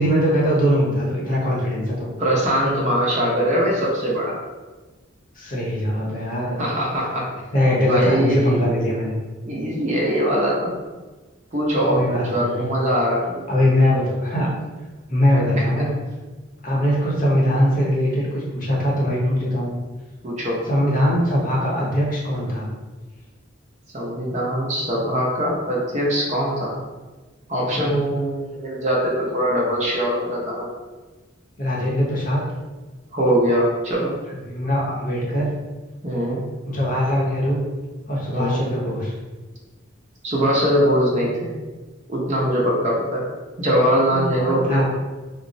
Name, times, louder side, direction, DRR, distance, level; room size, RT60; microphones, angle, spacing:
voice 1, 0.0-2.1 5.4-6.6 7.5-9.2 11.9-12.7 13.5-14.5 15.1-15.9 16.6-19.7 20.7-22.7 27.7-28.0 31.6-32.4 34.4-35.5 36.7-37.6 38.1-39.1 44.1-44.9, equal, 40° left, -4 dB, 0.7 m, -21 dB
voice 2, 2.2-4.4 6.6-7.3 7.9-8.6 9.4-10.7 11.5-13.4 20.2-20.6 23.9-26.7 27.5-30.7 33.1-34.1 36.0-36.4 38.3-38.6 40.2-41.5 42.1-43.2 43.6-44.9, equal, 35° right, -4 dB, 0.6 m, -22 dB
3.9 x 2.0 x 2.6 m, 1.3 s
head